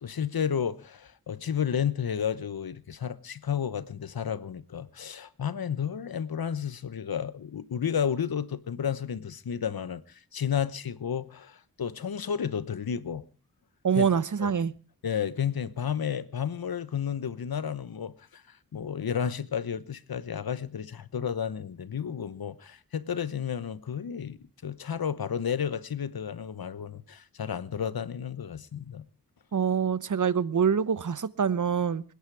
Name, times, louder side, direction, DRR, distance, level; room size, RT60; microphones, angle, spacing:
voice 1, 0.0-13.2 13.9-14.1 14.4-14.5 15.0-29.0, left 8 dB, 75° left, 1.0 m, -32 dB
voice 2, 13.8-14.7 29.5-32.0, right 7 dB, 55° right, 0.8 m, -25 dB
26.5 x 10.5 x 4.7 m
wide cardioid pair, 95°, 36 cm